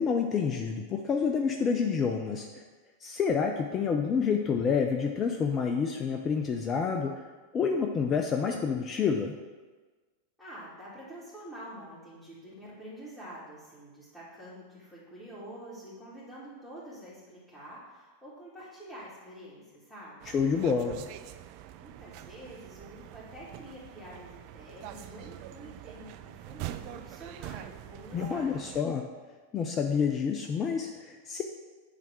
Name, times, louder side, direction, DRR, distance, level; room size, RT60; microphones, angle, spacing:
voice 1, 0.0-2.6 3.0-7.3 7.5-9.3 20.3-21.0 28.1-29.0 29.5-31.4, left 6 dB, 25° left, 3 dB, 0.5 m, -28 dB
voice 2, 10.4-20.3 21.8-28.7, equal, 5° left, -11 dB, 2.3 m, -47 dB
sound 1, 20.2-28.8, right 13 dB, 45° right, 0.3 m, -44 dB
8.2 x 3.5 x 6.2 m, 1.3 s
figure-of-eight pair, 90°, 0 cm